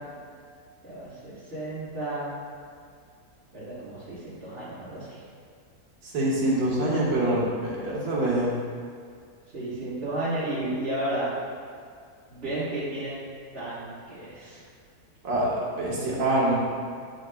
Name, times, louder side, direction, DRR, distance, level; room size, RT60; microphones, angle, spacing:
voice 1, 0.8-2.3 3.5-5.2 9.5-11.3 12.3-13.2 13.5-14.6, right 1 dB, 40° right, -13 dB, 1.6 m, -32 dB
voice 2, 6.1-8.5 15.2-16.5, right 1 dB, 70° right, -6 dB, 1.9 m, -25 dB
9.1 x 5.0 x 2.2 m, 2.2 s
omnidirectional pair, 1.7 m